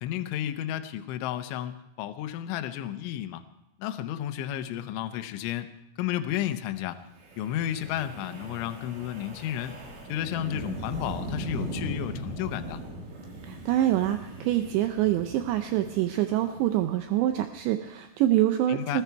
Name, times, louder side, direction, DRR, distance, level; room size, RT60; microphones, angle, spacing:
voice 1, 0.0-3.4 3.8-5.7 6.0-7.0 7.4-9.8 10.1-12.8 18.7-19.0, left 11 dB, 80° left, 8 dB, 3.1 m, -32 dB
Wind, 7.2-17.4, right 1 dB, 60° right, 5.1 m, -39 dB
voice 2, 13.5-19.0, right 13 dB, 90° right, 8 dB, 2.5 m, -25 dB
20.0 x 13.5 x 4.6 m, 0.87 s
omnidirectional pair, 5.8 m